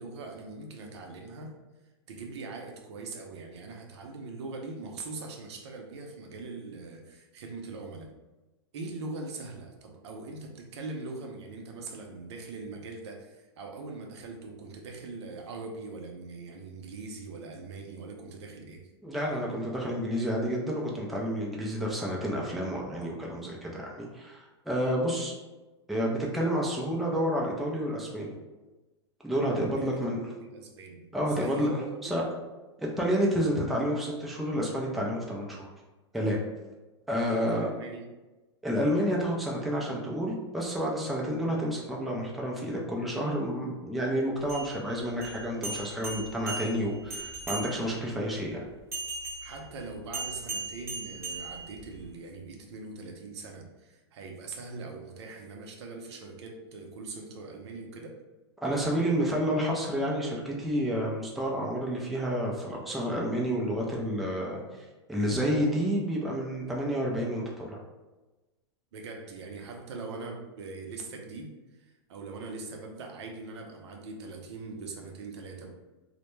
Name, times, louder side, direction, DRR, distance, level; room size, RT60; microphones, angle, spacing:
voice 1, 0.0-1.6 2.1-8.1 8.7-18.9 29.8-29.9 30.1-32.2 37.3-38.1 49.4-58.2 68.9-75.7, right 3 dB, 70° right, 2 dB, 0.5 m, -42 dB
voice 2, 19.0-25.3 25.9-28.4 29.2-30.2 31.1-32.2 32.8-35.7 36.1-36.4 37.1-37.7 38.6-48.6 58.6-67.8, equal, ahead, -3 dB, 0.3 m, -30 dB
sound 1, 44.4-48.1 48.9-52.1, right 3 dB, 20° right, 0.7 m, -38 dB
2.1 x 2.0 x 3.0 m, 1.1 s
hypercardioid pair, 125°, 15 cm